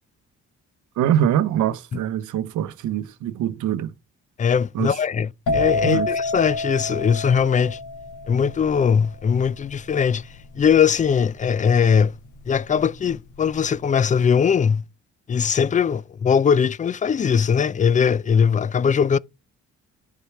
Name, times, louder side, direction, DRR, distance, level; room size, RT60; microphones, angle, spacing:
voice 1, 1.0-3.9 4.7-4.9 5.8-6.1, right 10 dB, 75° right, 0.8 m, -23 dB
voice 2, 4.4-7.8 8.3-10.2 10.6-12.1 12.5-14.8 15.3-19.2, left 7 dB, 25° left, 0.4 m, -20 dB
sound 1, 5.5-13.0 13.3-13.8, left 3 dB, 85° left, 1.5 m, -28 dB
10.0 x 4.3 x 4.7 m
cardioid pair, 90°, 30 cm